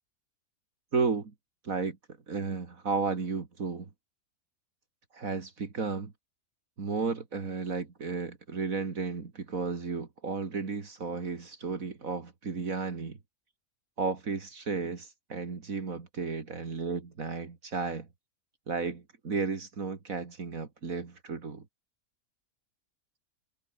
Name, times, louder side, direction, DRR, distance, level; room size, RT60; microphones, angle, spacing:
voice 1, 0.9-1.3 1.6-2.0 2.3-3.9 5.1-6.1 6.8-13.2 14.0-18.1 18.7-21.7, right 4 dB, 65° right, 2.7 m, -33 dB
omnidirectional pair, 1.6 m